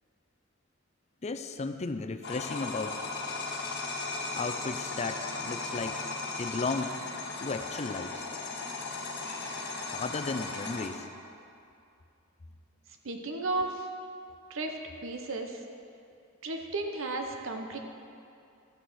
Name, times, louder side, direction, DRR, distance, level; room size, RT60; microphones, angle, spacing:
voice 1, 1.2-3.0 4.3-6.0 6.4-7.0 7.4-8.3 9.9-11.1, left 3 dB, 35° left, 9 dB, 0.5 m, -34 dB
sound 1, 2.2-10.9, left 3 dB, 55° left, 1.4 m, -36 dB
voice 2, 13.0-13.9 14.5-15.6 16.4-17.8, right 2 dB, 70° right, 4 dB, 0.8 m, -34 dB
13.0 x 6.5 x 6.2 m, 2.5 s
head